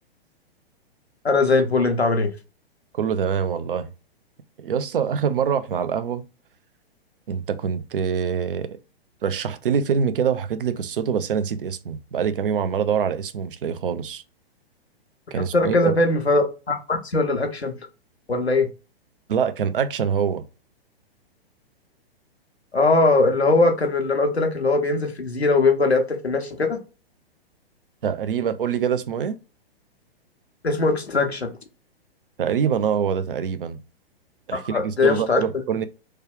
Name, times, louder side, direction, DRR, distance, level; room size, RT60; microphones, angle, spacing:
voice 1, 1.2-2.3 15.5-17.7 18.3-18.7 22.7-26.8 30.6-31.5 34.5-35.4, left 3 dB, 85° left, 0.8 m, -20 dB
voice 2, 2.9-3.9 4.6-6.2 7.3-8.7 9.2-14.2 15.3-16.0 19.3-20.4 28.0-29.3 32.4-33.8 34.5-35.9, right 7 dB, 60° right, 0.5 m, -24 dB
3.2 x 2.2 x 3.4 m
figure-of-eight pair, 115°, 31 cm